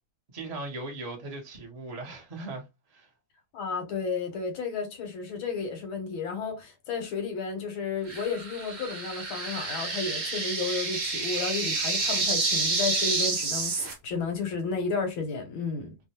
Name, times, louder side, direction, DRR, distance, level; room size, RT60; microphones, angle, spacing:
voice 1, 0.3-2.6 2.9-3.1, right 2 dB, 65° right, 0.3 m, -38 dB
voice 2, 3.5-16.0, left 4 dB, 90° left, 1.7 m, -32 dB
sound 1, 8.1-13.9, right 3 dB, 45° right, 0.9 m, -29 dB
3.5 x 2.1 x 2.8 m
omnidirectional pair, 2.1 m